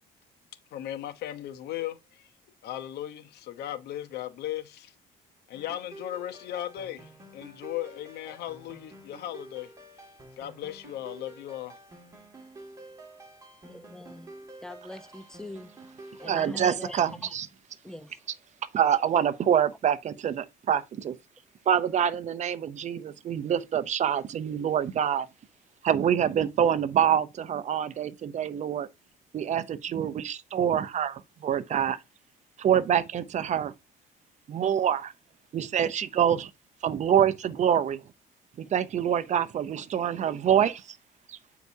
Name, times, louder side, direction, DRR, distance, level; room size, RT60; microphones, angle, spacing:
voice 1, 0.7-2.3 2.6-4.9 5.5-9.7 10.4-11.7, left 12 dB, 75° left, 0.8 m, -37 dB
sound 1, 5.5-17.2, right 1 dB, 20° right, 2.0 m, -49 dB
voice 2, 13.6-14.3 14.6-15.7 16.2-17.3 17.8-18.1, left 1 dB, 5° left, 0.7 m, -42 dB
voice 3, 16.2-17.5 18.7-21.2 21.7-25.3 25.8-28.9 29.3-32.0 32.6-33.7 34.5-35.1 35.5-36.5 36.8-38.0 38.6-41.0 41.3-41.4, right 9 dB, 45° right, 0.6 m, -26 dB
8.1 x 4.7 x 2.7 m
cardioid pair, 110°, 17 cm